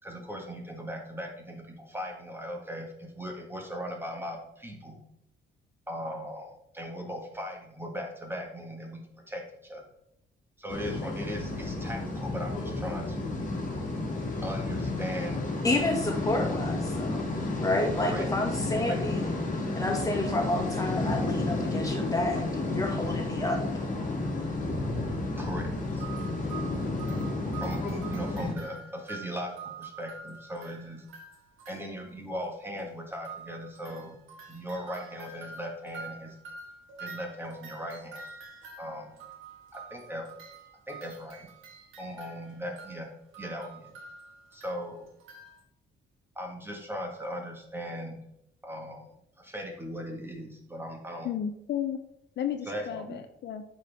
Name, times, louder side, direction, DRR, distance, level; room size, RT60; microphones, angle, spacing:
voice 1, 0.0-5.0 5.9-9.8 10.6-13.4 14.4-15.5 18.0-18.3 18.7-19.0 24.5-26.3 27.4-31.0 31.7-34.2 34.5-36.3 37.0-38.2 38.8-39.2 39.7-40.3 40.9-41.5 42.0-43.1 43.4-43.9 44.5-45.0 46.3-48.2 48.6-51.3 52.6-53.2, equal, 10° right, 1 dB, 1.6 m, -38 dB
sound 1, 10.7-28.5, left 2 dB, 40° left, 1.6 m, -31 dB
voice 2, 15.6-17.3 17.6-19.4 19.8-23.6, left 2 dB, 15° left, 1 dB, 1.8 m, -30 dB
sound 2, 25.8-32.1 32.4-32.5 32.8-32.9 33.1-45.6, right 5 dB, 85° right, 1.6 m, -47 dB
voice 3, 51.2-52.0 52.4-53.6, left 9 dB, 60° left, 8 dB, 0.5 m, -33 dB
8.2 x 4.5 x 3.5 m, 0.78 s
cardioid pair, 90°, 20 cm